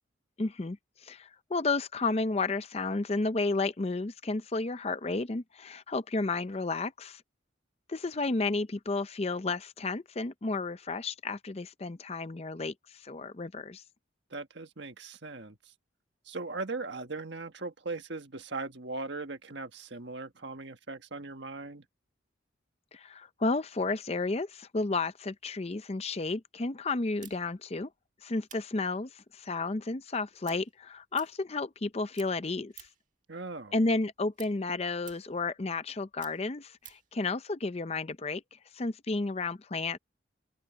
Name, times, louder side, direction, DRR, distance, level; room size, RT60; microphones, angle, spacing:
voice 1, 0.4-7.2 7.9-13.8 22.9-27.9 28.2-32.9 33.7-40.0, left 3 dB, 30° left, 0.5 m, -32 dB
voice 2, 14.3-15.6 16.2-21.8 33.3-33.7, right 3 dB, 60° right, 1.5 m, -39 dB
sound 1, 27.2-31.9 32.1-33.1 33.5-37.1, right 11 dB, 40° right, 1.6 m, -54 dB
head